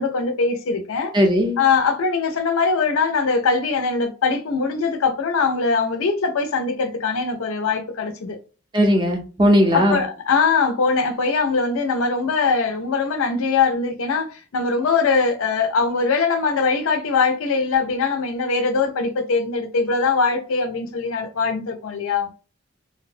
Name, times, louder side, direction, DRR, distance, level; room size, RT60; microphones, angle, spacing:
voice 1, 0.0-1.1 1.6-8.4 9.7-22.3, left 4 dB, 80° left, 0.5 m, -21 dB
voice 2, 1.1-1.6 8.7-10.0, equal, 20° right, 0.5 m, -17 dB
2.6 x 2.1 x 2.4 m
head